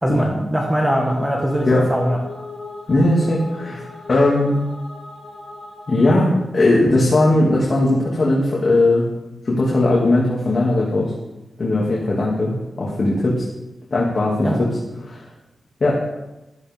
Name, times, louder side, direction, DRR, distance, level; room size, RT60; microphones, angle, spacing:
voice 1, 0.0-2.2 14.4-14.6, equal, 10° right, -1 dB, 1.6 m, -21 dB
sound 1, 0.7-6.4, left 3 dB, 80° left, 3.4 m, -37 dB
voice 2, 2.9-4.5 5.9-9.0 9.4-11.1 11.6-12.5 12.8-13.4 13.9-14.7 15.0-15.2 15.8-15.9, left 2 dB, 40° left, -5 dB, 2.6 m, -18 dB
15.0 x 12.0 x 3.7 m, 1.0 s
wide cardioid pair, 175°, 0 cm